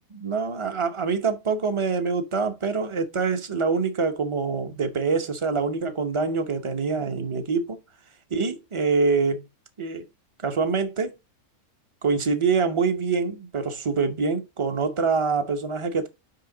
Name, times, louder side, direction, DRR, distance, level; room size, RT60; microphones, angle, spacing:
voice 1, 0.0-7.8 8.3-9.5 9.8-10.0 10.4-11.1 12.0-16.1, right 4 dB, 30° right, 0.7 m, -25 dB
5.7 x 5.5 x 3.8 m
omnidirectional pair, 1.5 m